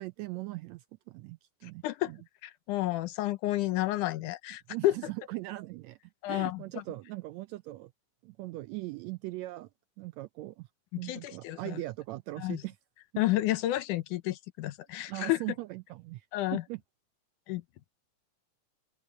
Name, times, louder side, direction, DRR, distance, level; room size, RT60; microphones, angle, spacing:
voice 1, 0.0-2.2 4.7-6.0 6.3-7.9 8.2-9.7 10.0-10.7 11.0-12.8 15.1-16.3 16.5-16.8, right 19 dB, 80° right, 1.6 m, -40 dB
voice 2, 2.4-5.0 6.2-6.8 10.9-11.8 12.4-12.6 13.2-15.4 16.3-16.6 17.5-17.6, left 16 dB, 85° left, 2.3 m, -31 dB
open air
omnidirectional pair, 3.6 m